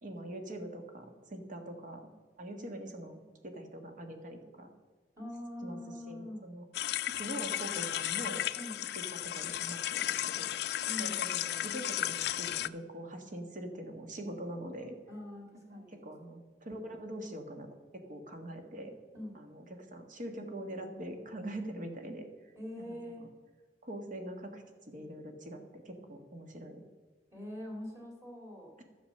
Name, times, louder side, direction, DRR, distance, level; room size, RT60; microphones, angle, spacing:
voice 1, 0.0-2.1 2.4-4.7 5.6-5.8 6.1-6.7 7.1-8.4 9.1-10.5 11.0-15.0 15.7-17.7 17.9-19.0 19.3-22.2 22.8-22.9 23.2-23.3 23.8-26.8, right 1 dB, 50° right, 5 dB, 1.5 m, -43 dB
voice 2, 5.2-6.5 8.5-8.8 10.8-11.3 15.1-16.0 19.1-19.4 22.5-23.3 27.3-28.7, left 1 dB, 15° right, 0 dB, 2.8 m, -44 dB
sound 1, 6.7-12.7, left 13 dB, 65° left, 0.4 m, -34 dB
11.5 x 7.2 x 6.5 m, 1.4 s
head